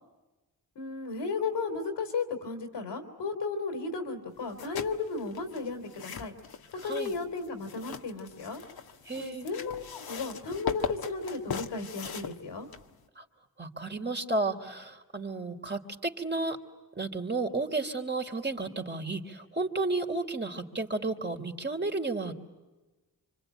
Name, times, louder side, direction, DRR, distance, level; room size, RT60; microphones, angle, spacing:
voice 1, 0.7-6.3 6.8-8.6 9.2-12.7, left 4 dB, 85° left, 6 dB, 3.2 m, -34 dB
sound 1, 4.4-13.1, left 6 dB, 65° left, 1.5 m, -40 dB
voice 2, 9.0-9.5 13.2-13.3 13.6-16.6 16.9-22.3, right 3 dB, 25° right, 4 dB, 3.2 m, -32 dB
25.5 x 25.5 x 9.1 m, 1.2 s
supercardioid pair, 45°, 40 cm